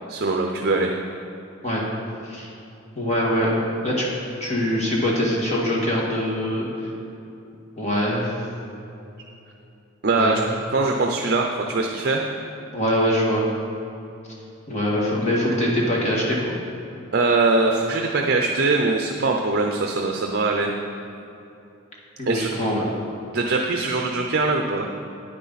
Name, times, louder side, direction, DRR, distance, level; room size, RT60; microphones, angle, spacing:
voice 1, 0.1-0.9 10.0-10.4 10.7-12.4 17.1-20.7 22.3-22.5 23.3-24.9, right 3 dB, 50° right, 2 dB, 0.6 m, -22 dB
voice 2, 3.0-3.5 3.8-4.1 4.4-6.9 7.8-8.5 10.1-10.5 12.7-13.5 14.7-16.5 22.2-22.9, equal, 35° left, -3 dB, 1.9 m, -23 dB
9.8 x 9.2 x 4.1 m, 2.8 s
head